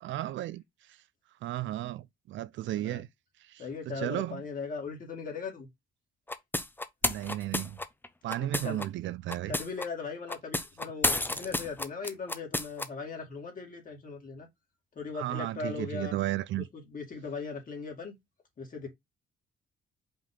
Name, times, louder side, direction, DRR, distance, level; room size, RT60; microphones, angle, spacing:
voice 1, 0.0-1.0 1.4-3.1 3.4-4.4 7.0-7.8 8.2-9.6 15.1-16.6, right 14 dB, 70° right, 0.4 m, -34 dB
voice 2, 3.6-5.7 8.4-8.8 9.5-14.5 15.0-16.2 16.7-18.1 18.6-18.9, left 5 dB, 45° left, 2.1 m, -39 dB
sound 1, 6.3-8.9 9.3-9.9 10.3-12.9, left 2 dB, 10° left, 0.6 m, -31 dB
5.3 x 2.7 x 3.6 m
cardioid pair, 90°, 20 cm